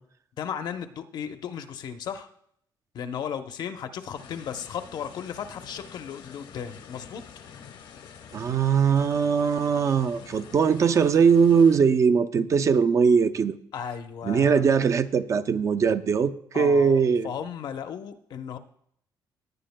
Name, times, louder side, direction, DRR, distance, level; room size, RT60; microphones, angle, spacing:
voice 1, 0.4-2.3 2.9-7.2 13.7-14.7 16.5-18.6, left 8 dB, 65° left, 8 dB, 0.8 m, -35 dB
sound 1, 4.1-11.8, left 7 dB, 80° left, 1.1 m, -47 dB
voice 2, 8.3-13.5 14.2-17.3, right 6 dB, 40° right, 10 dB, 0.5 m, -21 dB
17.5 x 9.7 x 2.2 m, 0.68 s
cardioid pair, 145°, 8 cm